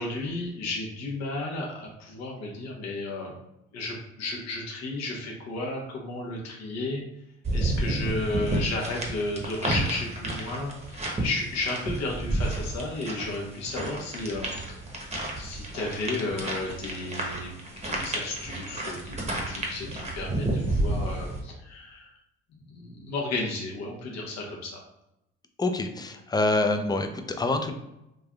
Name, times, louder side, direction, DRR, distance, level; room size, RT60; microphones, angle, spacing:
voice 1, 0.0-3.3 3.7-7.0 7.5-14.5 15.4-17.5 17.8-22.1 22.7-24.8, left 2 dB, 65° left, -2 dB, 1.0 m, -33 dB
sound 1, 7.4-21.4, right 1 dB, 20° right, 0.8 m, -31 dB
voice 2, 25.6-27.7, left 2 dB, 15° left, 6 dB, 0.4 m, -26 dB
3.3 x 2.5 x 2.2 m, 0.88 s
supercardioid pair, 70°, 29 cm